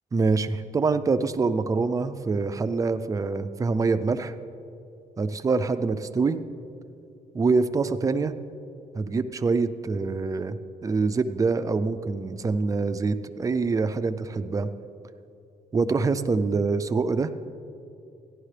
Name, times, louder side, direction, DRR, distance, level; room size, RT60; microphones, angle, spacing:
voice 1, 0.1-4.3 5.2-6.4 7.3-8.3 9.0-14.7 15.7-17.3, right 4 dB, 25° right, 10 dB, 0.4 m, -25 dB
14.5 x 11.0 x 3.3 m, 2.6 s
cardioid pair, 125°, 15 cm